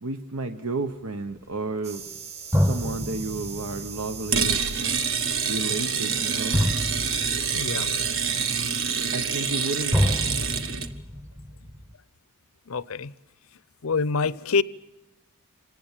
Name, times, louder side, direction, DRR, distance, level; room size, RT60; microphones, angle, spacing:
voice 1, 0.0-2.0 2.6-4.6 5.5-6.6 9.1-10.4, right 2 dB, 75° right, 1.1 m, -32 dB
sound 1, 1.8-9.1, right 6 dB, 30° right, 1.2 m, -41 dB
sound 2, 1.9-2.0 2.5-9.7 9.9-11.9, equal, 10° right, 0.9 m, -29 dB
sound 3, 4.3-10.9, right 6 dB, 60° right, 1.4 m, -26 dB
voice 2, 7.5-7.9 12.7-13.1 13.8-14.6, left 4 dB, 70° left, 0.7 m, -25 dB
26.0 x 19.0 x 7.4 m
head